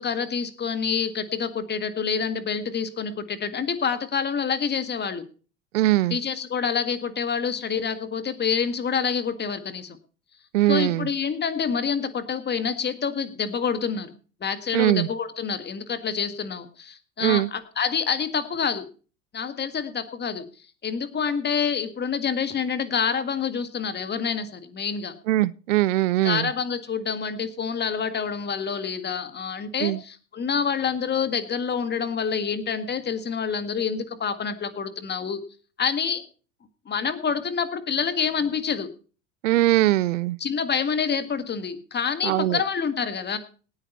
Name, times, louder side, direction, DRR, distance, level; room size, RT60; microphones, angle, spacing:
voice 1, 0.0-5.2 6.1-10.0 10.7-14.1 14.4-18.9 19.3-20.5 20.8-25.1 26.2-35.4 35.8-36.2 36.9-38.9 40.4-43.4, left 6 dB, 30° left, 1.8 m, -27 dB
voice 2, 5.7-6.2 10.5-11.1 14.7-15.1 17.2-17.5 25.3-26.5 29.8-30.0 39.4-40.4 42.2-42.6, right 16 dB, 75° right, 0.6 m, -21 dB
18.5 x 9.0 x 4.2 m
hypercardioid pair, 80°, 37 cm